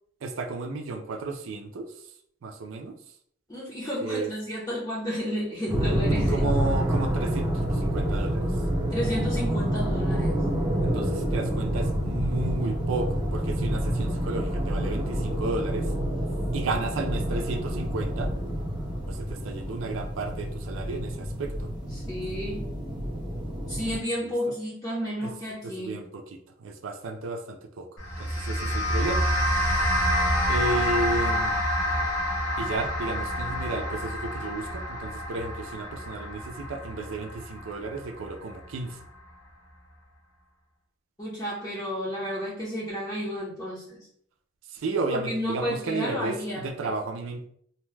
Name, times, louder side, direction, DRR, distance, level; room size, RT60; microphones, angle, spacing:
voice 1, 0.2-2.1 2.4-2.9 4.0-4.3 6.1-8.6 10.8-15.9 16.5-18.3 19.1-21.7 24.2-24.3 25.2-25.3 25.6-27.9 28.2-29.3 30.5-31.7 32.6-39.0 44.7-47.5, right 3 dB, 75° right, 5 dB, 0.4 m, -33 dB
voice 2, 3.5-6.4 8.9-10.4 21.9-22.6 23.7-26.0 41.2-44.1 45.1-46.9, equal, 20° left, -6 dB, 0.7 m, -32 dB
sound 1, 5.7-24.0, right 1 dB, 25° right, 0.6 m, -28 dB
sound 2, 28.0-38.5, equal, 85° left, 1.0 m, -28 dB
2.7 x 2.1 x 3.2 m, 0.64 s
head